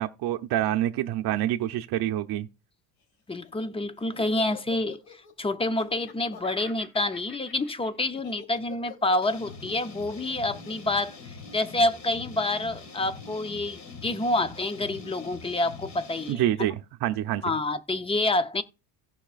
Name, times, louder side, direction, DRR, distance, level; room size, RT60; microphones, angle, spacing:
voice 1, 0.0-2.5 16.3-17.4, right 13 dB, 55° right, 0.7 m, -27 dB
Laughter, 3.3-11.7, left 7 dB, 85° left, 3.4 m, -47 dB
voice 2, 3.3-16.4 17.4-18.6, left 2 dB, 10° left, 0.5 m, -28 dB
sound 1, 9.2-16.3, left 4 dB, 35° left, 2.1 m, -44 dB
16.0 x 5.6 x 2.4 m
cardioid pair, 120°, 48 cm